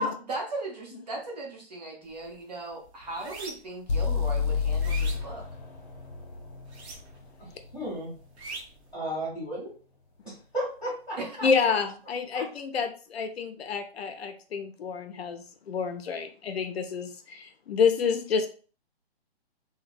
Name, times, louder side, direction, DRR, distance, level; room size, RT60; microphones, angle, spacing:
voice 1, 0.0-5.4 11.2-11.4, right 1 dB, 40° right, 0 dB, 0.7 m, -37 dB
sound 1, 2.1-2.3 2.7-3.8 4.3-6.0 6.6-7.4 7.6-8.9, right 3 dB, 85° right, 0.9 m, -42 dB
sound 2, 3.9-7.8, left 5 dB, 55° left, 0.9 m, -30 dB
voice 2, 7.7-8.1 8.9-9.7 10.2-11.8 12.3-12.4, right 1 dB, 5° right, -12 dB, 1.3 m, -34 dB
voice 3, 11.4-18.5, left 6 dB, 70° left, 7 dB, 0.5 m, -28 dB
3.0 x 2.1 x 2.5 m, 0.39 s
hypercardioid pair, 170°, 32 cm